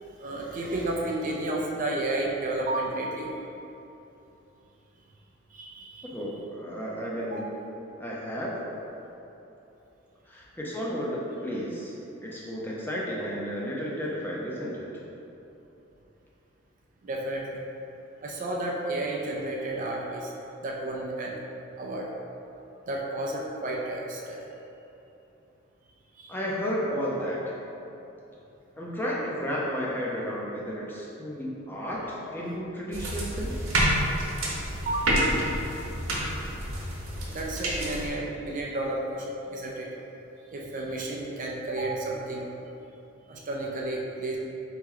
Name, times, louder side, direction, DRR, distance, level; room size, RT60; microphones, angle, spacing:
voice 1, 0.0-3.3 5.5-6.1 7.2-7.4 17.0-17.6 18.2-20.3 20.6-21.4 21.8-22.1 22.9-24.4 26.2-26.3 34.9-35.2 37.2-39.9 40.5-42.5 43.3-44.4, right 2 dB, 40° right, -2 dB, 0.4 m, -32 dB
voice 2, 6.1-7.6 8.0-8.5 10.3-11.9 12.2-14.9 26.3-27.4 28.8-33.7, equal, 10° left, -5 dB, 0.5 m, -32 dB
sound 1, 32.9-38.1, right 1 dB, 70° right, 0.9 m, -28 dB
4.2 x 3.0 x 3.7 m, 3.0 s
head